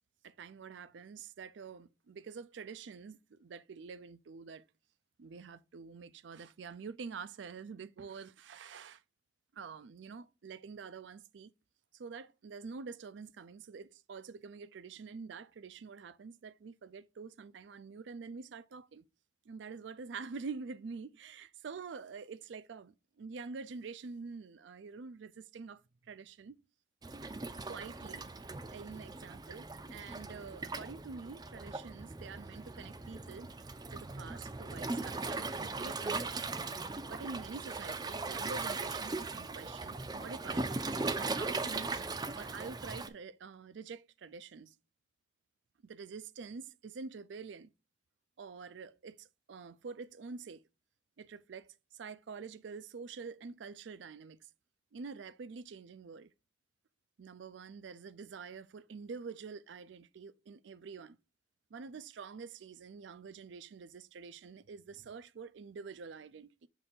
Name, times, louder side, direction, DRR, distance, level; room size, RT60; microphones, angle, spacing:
voice 1, 0.2-4.6 5.2-9.0 9.5-11.5 11.9-19.0 19.5-22.9 23.2-26.6 27.7-28.2 28.7-33.5 33.9-36.4 37.1-40.7 41.1-42.0 42.4-44.7 45.8-47.7 48.4-50.6 51.2-54.4 54.9-56.3 57.2-61.2 61.7-66.7, right 5 dB, 75° right, 0.4 m, -47 dB
Waves surf, 27.0-43.1, right 3 dB, 20° right, 0.4 m, -39 dB
6.8 x 3.3 x 4.3 m
head